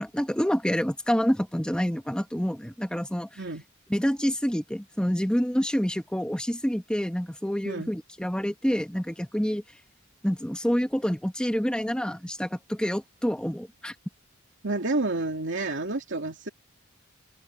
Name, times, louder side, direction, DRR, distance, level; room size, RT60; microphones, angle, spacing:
voice 1, 0.0-3.4 3.9-9.6 10.2-13.9, equal, 5° left, 1.4 m, -27 dB
voice 2, 14.6-16.5, right 2 dB, 60° right, 2.7 m, -29 dB
open air
head